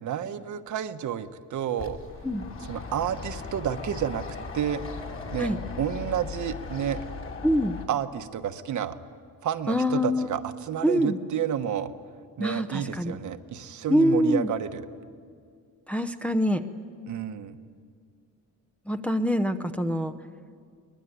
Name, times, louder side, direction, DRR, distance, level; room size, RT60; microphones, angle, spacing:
voice 1, 0.0-2.0 2.6-4.2 4.5-4.8 5.3-7.0 7.9-9.0 9.4-11.9 12.4-14.9 17.1-17.6, right 9 dB, 55° right, 9 dB, 1.2 m, -30 dB
sound 1, 1.8-7.9, left 4 dB, 35° left, 2.6 m, -38 dB
voice 2, 7.4-7.8 9.7-10.3 10.8-11.2 12.4-13.2 13.9-14.5 15.9-16.6 18.9-20.1, equal, 5° left, 7 dB, 0.7 m, -25 dB
23.0 x 21.5 x 9.5 m, 2.2 s
cardioid pair, 145°, 35 cm